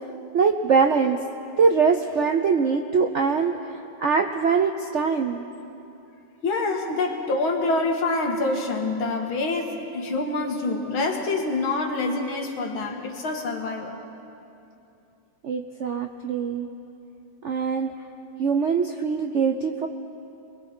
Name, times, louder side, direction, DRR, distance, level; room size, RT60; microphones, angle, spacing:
voice 1, 0.3-1.2 1.6-5.5 15.4-16.7 17.4-17.9 18.4-19.9, right 5 dB, 70° right, 5 dB, 0.6 m, -23 dB
voice 2, 6.4-14.0, left 3 dB, 90° left, 3 dB, 2.5 m, -26 dB
28.5 x 21.5 x 4.5 m, 2.8 s
omnidirectional pair, 2.1 m